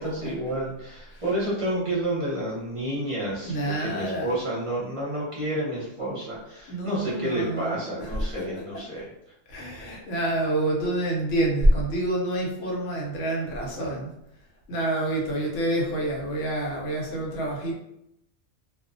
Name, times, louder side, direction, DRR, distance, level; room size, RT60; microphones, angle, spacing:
voice 1, 0.0-9.0, right 1 dB, 30° right, -6 dB, 0.7 m, -30 dB
voice 2, 3.4-4.4 6.7-8.8 9.5-14.1 14.7-17.7, right 1 dB, 75° left, -2 dB, 1.0 m, -27 dB
2.3 x 2.1 x 2.5 m, 0.82 s
omnidirectional pair, 1.3 m